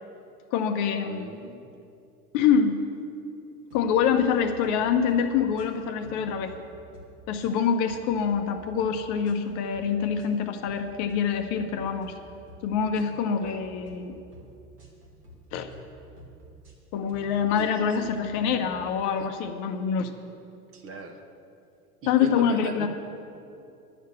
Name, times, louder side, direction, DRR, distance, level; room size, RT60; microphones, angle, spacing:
voice 1, 0.5-1.3 2.3-2.8 3.7-6.5 7.3-12.1 12.6-14.2 15.5-15.7 16.9-20.1 22.1-22.9, left 7 dB, 40° left, 6 dB, 0.8 m, -25 dB
voice 2, 1.1-1.7 13.4-13.6 17.6-18.1 19.2-19.3 20.7-21.2 22.0-22.9, right 4 dB, 30° right, 6 dB, 1.1 m, -39 dB
sound 1, 3.7-4.3 4.6-4.8 5.1-5.7 6.0-7.1 7.4-8.4 8.8-9.0 9.2-9.8 10.2-10.3 10.6-11.2 11.5-11.7 12.0-12.6 12.9-13.1 13.4-14.0 14.3-14.5 14.8-15.4 15.7-15.9 16.2-16.7 17.1-17.3 17.5-18.1 18.5-18.6, equal, 80° right, 2.5 m, -49 dB
11.0 x 6.5 x 9.2 m, 2.6 s
figure-of-eight pair, 80°, 46 cm